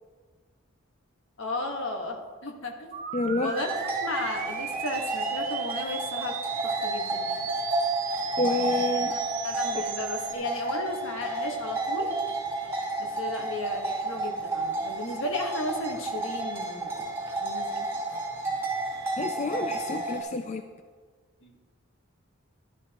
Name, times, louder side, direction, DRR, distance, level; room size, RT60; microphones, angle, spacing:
voice 1, 1.4-2.9 3.4-3.7 4.0-6.4 6.6-7.5 8.3-8.7 9.1-9.2 9.4-12.1 13.0-17.1 17.4-17.9 21.4-21.5, left 2 dB, 70° left, 2 dB, 1.4 m, -34 dB
sound 1, 2.9-10.3, right 9 dB, 40° right, 0.4 m, -37 dB
voice 2, 3.1-3.5 8.4-9.1 9.7-9.8 19.2-20.6, left 2 dB, 35° left, 7 dB, 0.4 m, -29 dB
sound 2, 3.6-20.2, right 2 dB, 10° right, 2.7 m, -31 dB
12.0 x 11.5 x 2.9 m, 1.5 s
head